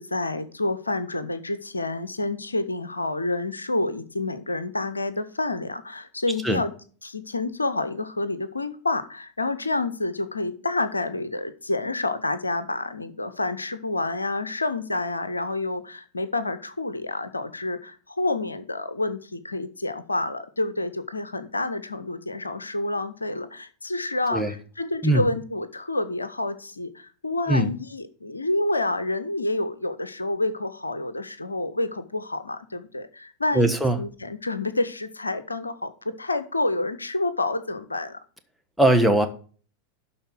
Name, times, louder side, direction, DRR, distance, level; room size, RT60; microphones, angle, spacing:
voice 1, 0.0-6.7 7.0-38.2, left 2 dB, 80° left, 13 dB, 0.8 m, -28 dB
voice 2, 33.5-34.0 38.8-39.3, right 1 dB, ahead, 8 dB, 1.3 m, -20 dB
12.0 x 4.3 x 5.9 m, 0.41 s
figure-of-eight pair, 90°, 0 cm